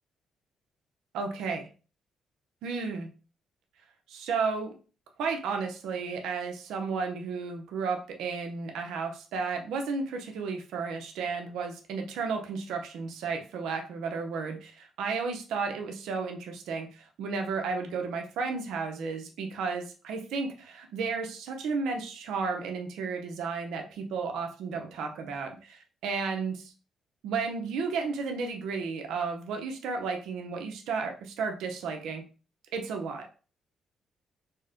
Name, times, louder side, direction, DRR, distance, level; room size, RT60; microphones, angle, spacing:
voice 1, 1.1-1.7 2.6-3.1 4.1-4.7 5.2-16.9 17.2-26.7 27.2-32.2 32.7-33.2, right 4 dB, 85° right, 4 dB, 0.7 m, -33 dB
4.1 x 2.1 x 3.6 m, 0.36 s
cardioid pair, 90°, 0 cm